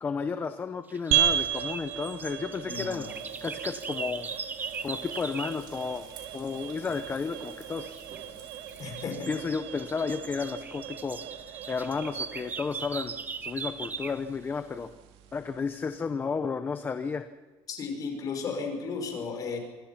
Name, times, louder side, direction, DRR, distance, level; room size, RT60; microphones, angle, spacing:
voice 1, 0.0-3.1 3.4-4.3 4.8-6.1 6.3-8.0 8.3-8.4 9.3-11.2 11.7-13.1 13.4-14.9 15.3-17.3, left 5 dB, 20° left, 9 dB, 0.7 m, -32 dB
sound 1, 0.9-5.6 7.8-8.2 8.7-14.2, right 5 dB, 15° right, 0.8 m, -39 dB
sound 2, 1.1-15.7, right 10 dB, 70° right, 2.5 m, -35 dB
voice 2, 2.6-3.1 8.8-9.3 17.7-19.6, left 5 dB, 35° left, 3 dB, 5.9 m, -34 dB
Frying (food), 3.0-9.1, right 6 dB, 45° right, 6.3 m, -53 dB
26.5 x 23.5 x 5.9 m, 1.3 s
cardioid pair, 180°, 11 cm